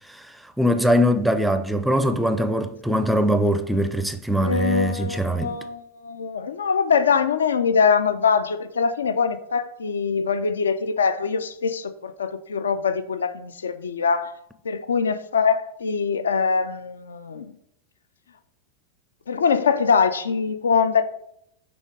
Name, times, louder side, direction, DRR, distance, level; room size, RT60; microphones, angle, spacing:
voice 1, 0.1-5.6, equal, 5° right, 0.4 m, -22 dB
voice 2, 4.4-14.3 14.6-17.5 19.3-21.0, left 6 dB, 70° left, 0.3 m, -23 dB
6.2 x 3.3 x 5.0 m
figure-of-eight pair, 90°, 0 cm